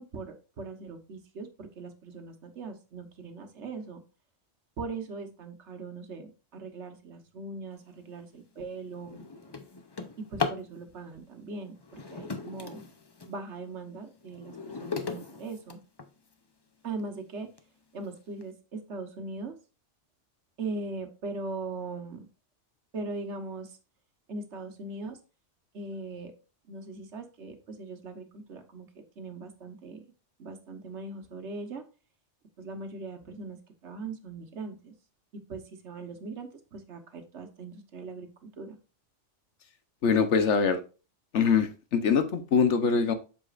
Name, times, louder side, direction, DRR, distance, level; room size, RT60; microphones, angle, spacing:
voice 1, 0.0-4.0 4.8-9.2 10.2-12.8 13.3-15.8 16.8-17.5 17.9-19.6 20.6-22.3 22.9-23.8 24.3-25.2 25.7-26.3 26.7-30.0 30.4-31.8 32.6-34.9 35.5-38.8, right 3 dB, 70° right, 6 dB, 1.4 m, -40 dB
Drawer open or close, 8.0-8.2 8.7-10.7 11.8-13.4 13.9-16.3 17.0-17.1 17.6-17.7 18.0-18.4, left 4 dB, 25° left, 0.6 m, -37 dB
voice 2, 40.0-40.8 41.3-43.1, left 6 dB, 75° left, 9 dB, 1.2 m, -23 dB
8.1 x 6.8 x 2.5 m, 0.33 s
omnidirectional pair, 1.2 m